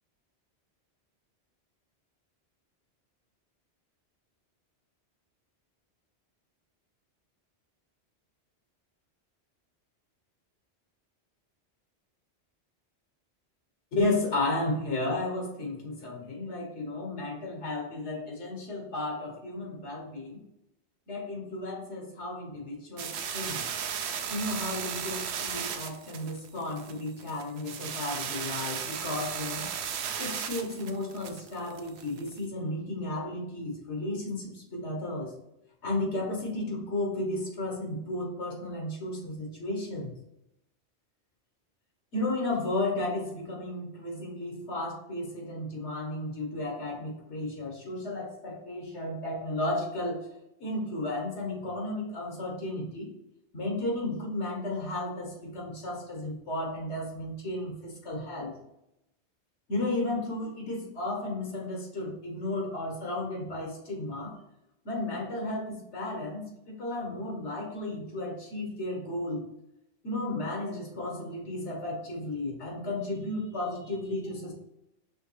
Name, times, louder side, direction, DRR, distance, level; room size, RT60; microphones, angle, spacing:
voice 1, 13.9-20.4 21.1-23.7 24.3-29.7 30.2-35.3 35.8-40.1 42.1-50.3 50.6-53.1 53.5-58.5 59.7-64.3 64.8-69.4 70.0-74.5, left 2 dB, 90° left, -1 dB, 1.7 m, -33 dB
sound 1, 23.0-32.4, right 7 dB, 75° right, 0.8 m, -36 dB
5.4 x 3.1 x 3.2 m, 0.85 s
omnidirectional pair, 1.1 m